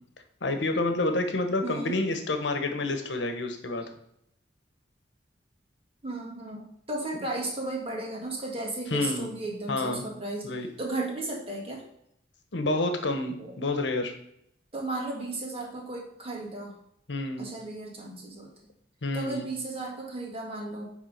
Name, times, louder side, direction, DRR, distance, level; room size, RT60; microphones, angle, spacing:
voice 1, 0.4-3.8 8.9-9.3 9.7-10.0 10.4-10.7 12.5-14.1 17.1-17.5 19.0-19.4, left 2 dB, 75° left, 6 dB, 1.1 m, -28 dB
voice 2, 1.6-2.0 6.0-11.8 13.4-13.6 14.7-16.8 17.4-18.5 19.1-20.9, right 2 dB, 30° right, -1 dB, 2.0 m, -35 dB
9.3 x 3.6 x 5.0 m, 0.74 s
head